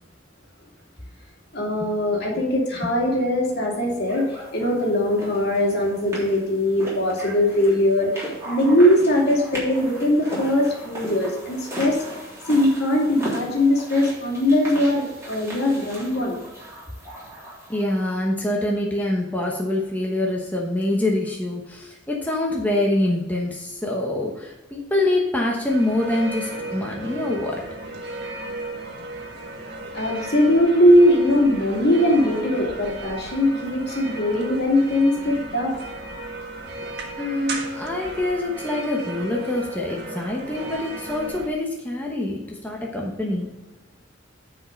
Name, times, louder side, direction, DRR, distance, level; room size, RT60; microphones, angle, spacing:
voice 1, 1.5-12.0 12.5-16.4 29.9-35.8, left 1 dB, 55° left, -1 dB, 2.5 m, -20 dB
sound 1, 4.1-18.1, equal, 15° right, 3.3 m, -37 dB
voice 2, 17.7-27.6 37.2-43.5, left 1 dB, 10° left, -2 dB, 1.0 m, -25 dB
sound 2, 25.7-41.5, right 2 dB, 55° right, 1.5 m, -35 dB
9.6 x 5.0 x 5.1 m, 1.0 s
head